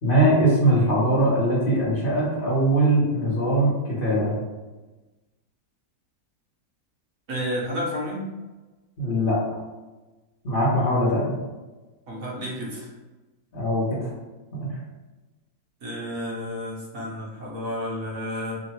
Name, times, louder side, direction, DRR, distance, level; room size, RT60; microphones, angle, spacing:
voice 1, 0.0-4.4 9.0-9.4 10.4-11.3 13.5-14.1 14.5-14.7, right 1 dB, 35° left, -6 dB, 1.3 m, -21 dB
voice 2, 7.3-8.3 12.1-12.9 15.8-18.6, equal, 60° right, -5 dB, 1.5 m, -31 dB
3.7 x 2.6 x 4.4 m, 1.2 s
omnidirectional pair, 1.7 m